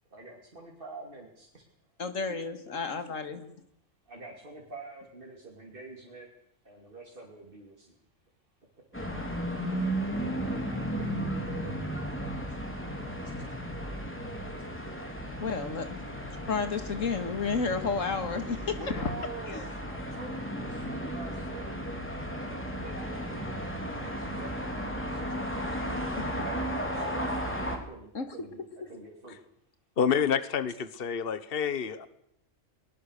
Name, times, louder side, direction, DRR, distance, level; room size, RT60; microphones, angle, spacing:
voice 1, 0.1-1.7 2.7-2.8 4.1-6.3 6.6-8.0 18.7-19.6 19.8-23.6 24.0-25.6 26.7-27.3 27.7-29.4, right 3 dB, 45° right, 0 dB, 3.2 m, -46 dB
voice 2, 2.0-3.5 15.4-16.1 16.5-19.2 19.5-19.7 26.2-26.3 28.1-28.3, left 5 dB, 80° left, 9 dB, 2.3 m, -31 dB
sound 1, 8.9-27.8, equal, 10° left, 3.3 m, -34 dB
voice 3, 30.0-32.1, left 7 dB, 50° left, 13 dB, 1.3 m, -28 dB
22.0 x 20.0 x 6.7 m, 0.72 s
omnidirectional pair, 1.3 m